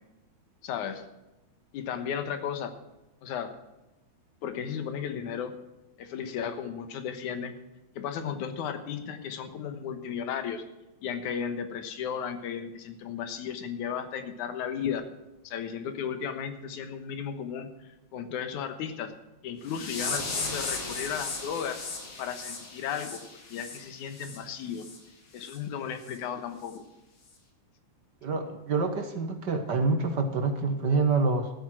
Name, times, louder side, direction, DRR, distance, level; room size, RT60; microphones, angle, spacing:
voice 1, 0.6-1.0 1.7-2.7 3.2-3.6 4.4-5.6 6.0-7.6 8.0-10.6 11.0-15.1 15.4-19.1 19.4-21.8 22.2-24.9 25.3-26.8, left 7 dB, 85° left, 9 dB, 2.7 m, -34 dB
sound 1, 19.7-24.4 24.8-25.0 25.4-25.6 26.0-26.2 26.7-26.8, left 4 dB, 45° left, 2.8 m, -36 dB
voice 2, 28.2-31.5, right 4 dB, 60° right, 6 dB, 1.1 m, -27 dB
14.5 x 8.9 x 6.2 m, 0.99 s
omnidirectional pair, 3.4 m